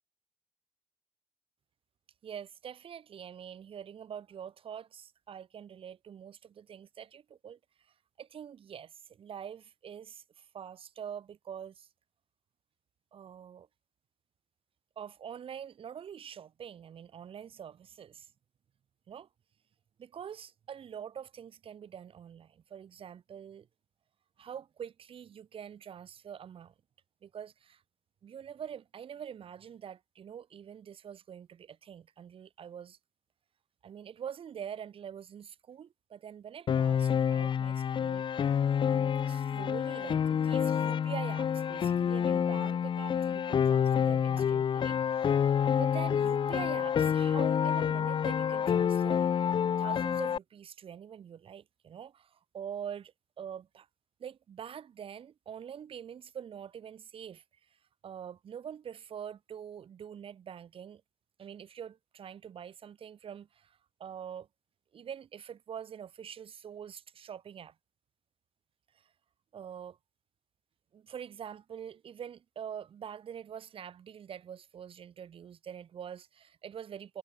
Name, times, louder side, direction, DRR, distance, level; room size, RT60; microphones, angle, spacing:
voice 1, 2.2-11.9 13.1-13.7 15.0-18.3 19.1-19.3 20.0-23.7 24.4-26.7 27.2-27.8 28.2-33.0 33.8-38.2 38.8-45.4 45.7-49.3 49.8-53.9 54.2-57.4 58.0-61.0 61.4-64.5 64.9-67.7 68.9-69.1 69.5-70.0 70.9-77.2, right 8 dB, 60° right, 2.7 m, -45 dB
Piano, 36.7-50.4, left 8 dB, 50° left, 0.8 m, -28 dB
wide cardioid pair, 155°, 11 cm